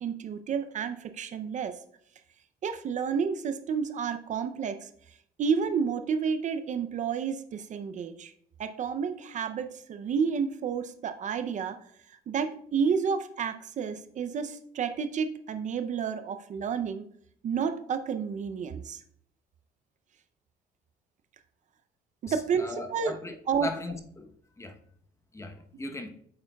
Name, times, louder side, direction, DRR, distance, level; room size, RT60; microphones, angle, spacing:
voice 1, 0.0-1.8 2.6-4.9 5.4-8.3 8.6-11.8 12.1-17.0 17.4-19.0 22.2-23.2 23.5-23.7, right 6 dB, 45° right, 10 dB, 0.5 m, -30 dB
voice 2, 22.3-24.3 24.6-24.8 25.3-26.1, left 2 dB, 15° left, 6 dB, 0.9 m, -38 dB
8.6 x 6.9 x 2.3 m, 0.65 s
cardioid pair, 110°, 17 cm